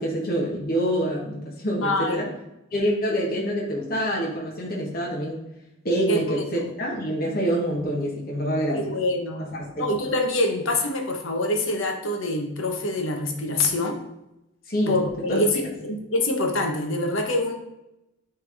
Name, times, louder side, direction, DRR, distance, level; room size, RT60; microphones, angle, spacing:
voice 1, 0.0-2.3 2.7-5.4 5.8-8.9 9.7-9.8 14.7-14.9 15.3-15.4, equal, 45° left, -4 dB, 1.4 m, -26 dB
voice 2, 1.8-2.2 6.1-6.6 8.7-9.4 9.8-14.0 14.9-17.5, left 2 dB, 70° left, 3 dB, 1.0 m, -25 dB
10.5 x 3.5 x 3.5 m, 0.89 s
head